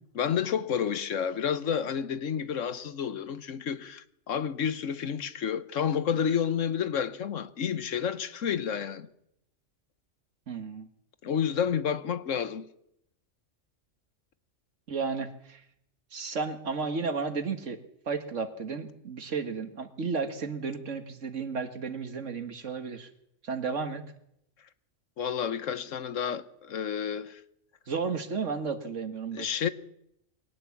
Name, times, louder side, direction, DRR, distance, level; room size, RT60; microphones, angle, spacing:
voice 1, 0.2-9.1 11.2-12.7 25.2-27.4 29.3-29.7, left 8 dB, 85° left, 1.4 m, -30 dB
voice 2, 10.5-10.9 14.9-15.6 16.1-17.8 18.1-23.1 23.4-24.0 27.9-29.5, right 5 dB, 75° right, 2.0 m, -33 dB
22.5 x 18.0 x 7.2 m
omnidirectional pair, 1.3 m